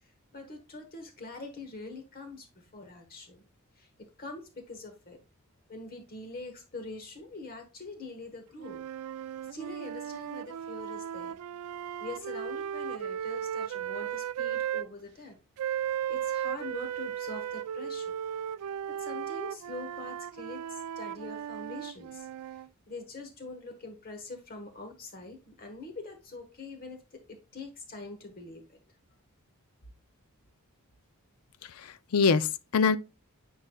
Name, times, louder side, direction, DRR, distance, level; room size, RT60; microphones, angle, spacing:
voice 1, 0.0-3.4 3.7-5.2 5.7-8.8 9.5-11.4 12.0-15.4 16.1-18.2 18.9-28.8, left 3 dB, 40° left, 1.2 m, -44 dB
sound 1, 8.6-14.9 15.6-22.7, right 9 dB, 80° right, 0.3 m, -36 dB
voice 2, 31.6-33.0, left 5 dB, 75° left, 0.5 m, -25 dB
9.8 x 4.7 x 2.3 m
head